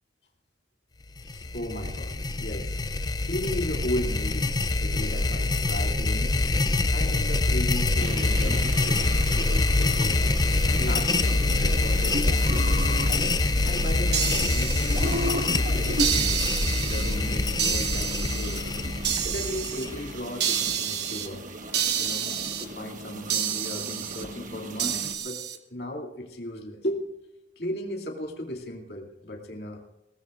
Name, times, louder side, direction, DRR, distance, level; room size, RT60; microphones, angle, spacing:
sound 1, 1.2-20.2, left 2 dB, 20° left, 0.5 m, -25 dB
voice 1, 1.3-6.4 6.9-10.3 10.6-12.9 13.6-16.4 16.8-18.6 19.2-21.6 22.0-25.4 25.7-27.2 27.6-29.8, left 1 dB, 55° left, 1 dB, 2.6 m, -36 dB
sound 2, 8.0-25.1, right 1 dB, 40° right, 1.3 m, -36 dB
sound 3, 14.1-15.5 16.0-17.2 17.6-18.6 19.0-19.9 20.4-21.3 21.7-22.7 23.3-24.2 24.8-25.6, right 9 dB, 60° right, 1.2 m, -29 dB
21.5 x 18.5 x 2.5 m, 0.97 s
head